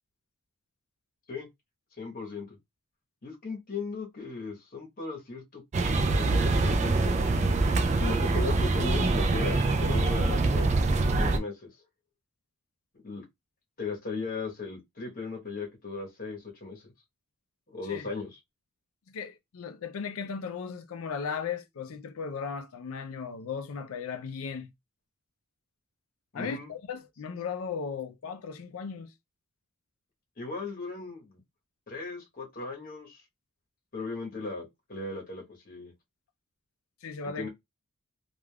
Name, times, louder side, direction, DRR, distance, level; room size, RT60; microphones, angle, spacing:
voice 1, 2.0-2.6 3.2-7.2 8.0-10.7 11.1-11.7 13.0-13.2 13.8-16.8 17.7-18.4 26.3-26.7 30.4-31.4 31.9-33.2 33.9-35.9 37.2-37.5, left 4 dB, 40° left, 1.0 m, -37 dB
sound 1, 5.7-11.4, right 2 dB, 30° right, 0.3 m, -25 dB
voice 2, 19.1-24.7 26.3-29.1 37.0-37.5, left 6 dB, 65° left, 0.4 m, -36 dB
3.3 x 2.4 x 2.2 m
head